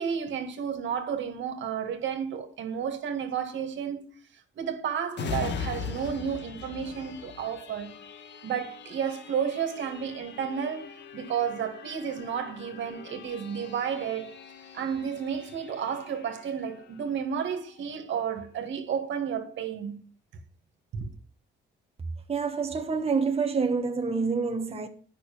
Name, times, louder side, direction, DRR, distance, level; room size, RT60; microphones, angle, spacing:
voice 1, 0.0-4.0 4.6-8.0 8.4-14.3 14.7-20.1 20.9-21.1, right 7 dB, 70° right, 2.0 m, -32 dB
sound 1, 5.1-18.5 18.9-19.0, left 5 dB, 65° left, 1.5 m, -41 dB
voice 2, 22.3-24.9, right 5 dB, 30° right, 1.2 m, -27 dB
9.9 x 6.2 x 7.0 m
cardioid pair, 90°, 20 cm